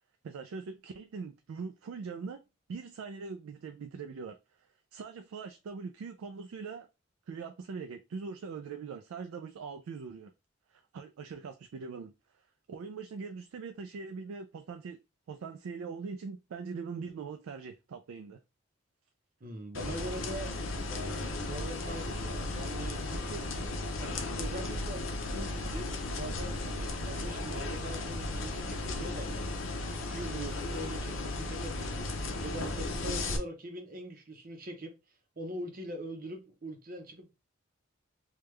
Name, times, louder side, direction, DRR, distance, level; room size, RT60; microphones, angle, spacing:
voice 1, 0.2-2.4 2.7-4.6 4.9-6.9 7.3-10.3 10.7-12.1 12.7-15.0 15.3-18.4, right 5 dB, 90° right, 0.3 m, -42 dB
voice 2, 19.4-20.5 20.9-23.4 24.0-25.1 25.3-29.4 30.0-32.1 32.4-34.9 35.4-37.3, right 1 dB, 45° right, 0.7 m, -42 dB
sound 1, 19.7-33.4, left 2 dB, 75° left, 0.6 m, -35 dB
3.4 x 2.3 x 3.1 m
head